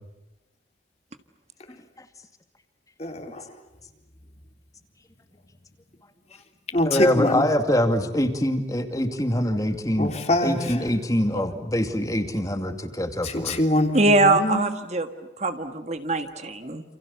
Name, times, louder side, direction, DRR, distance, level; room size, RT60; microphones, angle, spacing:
voice 1, 3.0-3.4 6.7-7.4 10.0-10.8 13.2-14.7, left 1 dB, 35° left, 5 dB, 3.3 m, -24 dB
voice 2, 6.8-10.1 10.4-13.6, left 1 dB, 20° left, 6 dB, 2.4 m, -24 dB
voice 3, 13.9-15.1 15.4-16.8, right 2 dB, 35° right, 8 dB, 1.6 m, -22 dB
29.0 x 29.0 x 7.0 m, 0.98 s
head